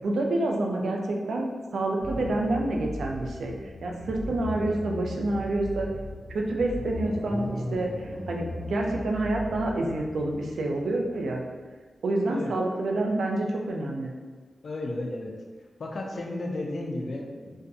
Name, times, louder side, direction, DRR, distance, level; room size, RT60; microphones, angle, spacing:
voice 1, 0.0-1.5 1.7-5.9 6.3-11.4 12.0-14.2, right 2 dB, 90° right, 1 dB, 0.3 m, -28 dB
sound 1, 2.0-11.4, left 1 dB, 25° left, 0.9 m, -37 dB
voice 2, 14.6-15.3 15.8-17.6, left 2 dB, 65° left, 1 dB, 0.4 m, -33 dB
2.4 x 2.3 x 2.6 m, 1.4 s
cardioid pair, 70°, 0 cm